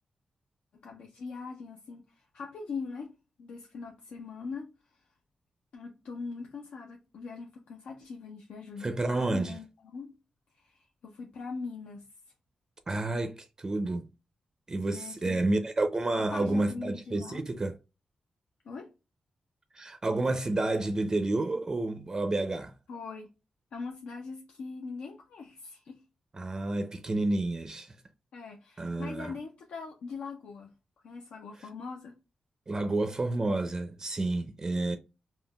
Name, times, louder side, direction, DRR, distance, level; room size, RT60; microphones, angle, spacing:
voice 1, 0.8-3.1 3.4-5.0 5.7-10.1 10.5-12.1 14.9-15.5 16.1-17.4 18.6-18.9 22.9-23.3 23.7-26.0 28.3-30.7 31.0-32.2, left 4 dB, 85° left, 0.5 m, -41 dB
voice 2, 8.8-9.6 12.9-14.1 14.7-17.8 19.7-22.7 26.3-28.0 28.8-29.3 32.7-35.0, right 2 dB, 30° right, 0.4 m, -30 dB
3.6 x 2.1 x 2.2 m
cardioid pair, 75°, 2 cm